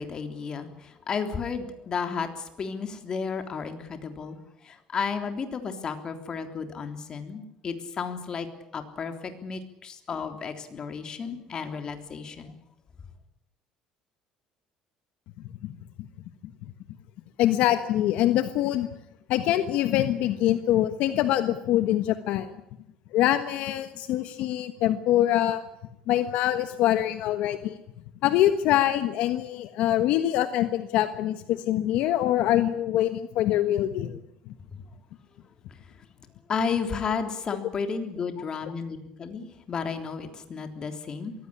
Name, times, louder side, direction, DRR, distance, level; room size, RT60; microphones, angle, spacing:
voice 1, 0.0-4.4 4.6-8.5 8.7-12.5 34.7-34.8 36.5-41.3, left 5 dB, 35° left, 7 dB, 3.4 m, -33 dB
voice 2, 17.4-18.9 19.3-22.5 23.1-25.6 26.1-27.8 28.2-34.2, left 12 dB, 70° left, 10 dB, 1.4 m, -24 dB
23.0 x 16.0 x 10.0 m, 0.82 s
cardioid pair, 115°, 2 cm